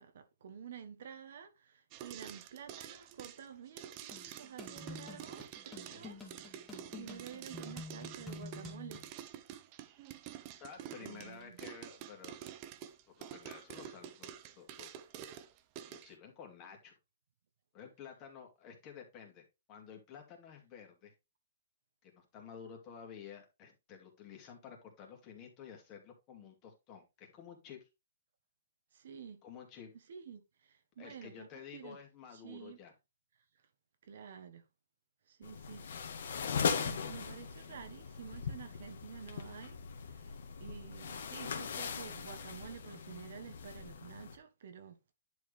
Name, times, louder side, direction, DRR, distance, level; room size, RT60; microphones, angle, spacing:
voice 1, 0.0-9.0 10.4-10.6 11.0-11.6 28.9-29.4 29.9-32.0 32.3-32.8 34.0-34.6 35.3-45.0, right 7 dB, 60° right, 1.4 m, -51 dB
sound 1, 1.9-16.1, right 10 dB, 30° right, 0.8 m, -48 dB
sound 2, 4.1-9.1, left 2 dB, 5° left, 1.9 m, -48 dB
voice 2, 10.6-12.4 13.2-14.9 15.9-16.9 17.7-21.1 22.0-27.9 29.4-29.9 31.0-32.9, left 7 dB, 25° left, 2.6 m, -52 dB
sound 3, 35.4-44.4, left 6 dB, 65° left, 1.8 m, -39 dB
10.5 x 4.8 x 3.4 m
hypercardioid pair, 160°, 0 cm